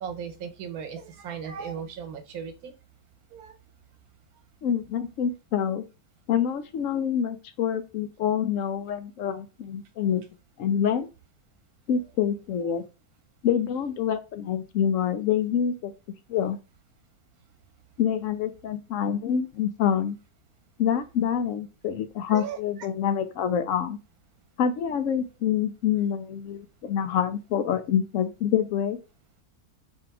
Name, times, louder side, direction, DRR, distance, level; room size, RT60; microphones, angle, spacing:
voice 1, 0.0-2.7 3.3-3.5 22.3-22.6, right 7 dB, 80° right, 7 dB, 1.3 m, -36 dB
voice 2, 4.6-5.8 6.3-10.2 10.6-11.1 11.9-12.8 13.4-15.9 16.3-16.6 18.0-20.2 20.8-24.0 24.6-29.0, left 8 dB, 70° left, 10 dB, 0.9 m, -26 dB
3.6 x 2.8 x 4.6 m, 0.29 s
omnidirectional pair, 1.5 m